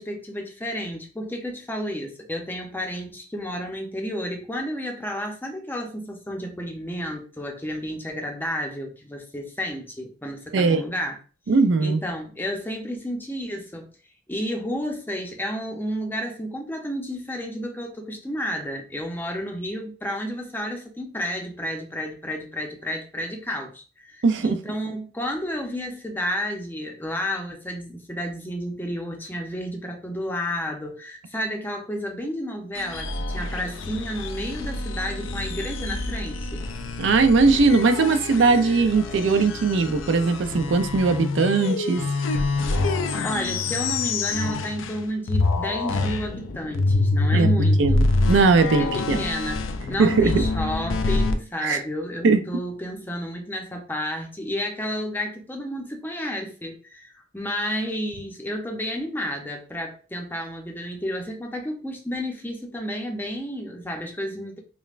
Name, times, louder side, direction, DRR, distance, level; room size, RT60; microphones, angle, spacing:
voice 1, 0.0-11.1 11.8-13.9 14.3-36.7 43.2-48.0 48.8-49.6 49.9-64.6, equal, 10° left, 0.6 m, -31 dB
voice 2, 11.5-12.0 24.2-24.6 37.0-42.0 47.3-47.5 47.8-49.2 50.0-50.4 51.6-51.8 52.2-52.4, right 4 dB, 65° right, 0.4 m, -19 dB
sound 1, 32.7-45.0 45.3-51.3, left 3 dB, 80° left, 0.4 m, -26 dB
5.2 x 2.1 x 2.4 m
head